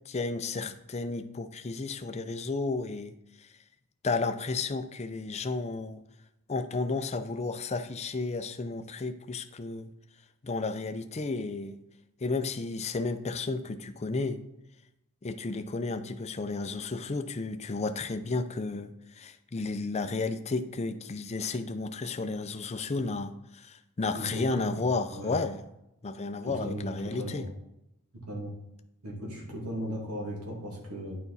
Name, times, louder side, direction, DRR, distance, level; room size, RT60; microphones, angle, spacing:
voice 1, 0.1-3.5 4.0-6.0 6.5-9.9 10.4-11.8 12.2-14.4 15.2-25.6 26.0-27.5, left 3 dB, 30° left, 9 dB, 0.5 m, -32 dB
voice 2, 24.1-24.8 25.1-25.3 26.4-26.9 27.2-27.4 28.3-28.5 29.0-31.2, equal, 85° right, -2 dB, 2.5 m, -37 dB
9.3 x 5.1 x 4.2 m, 0.87 s
head